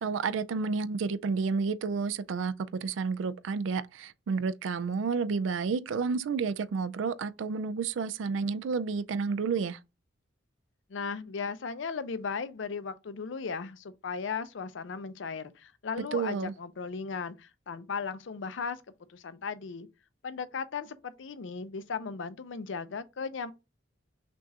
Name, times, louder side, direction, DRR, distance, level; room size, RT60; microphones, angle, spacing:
voice 1, 0.0-9.8 16.1-16.5, right 5 dB, 75° right, 0.4 m, -30 dB
voice 2, 10.9-18.8 19.1-19.9 20.2-23.5, left 5 dB, 70° left, 0.5 m, -36 dB
6.0 x 2.4 x 2.7 m
head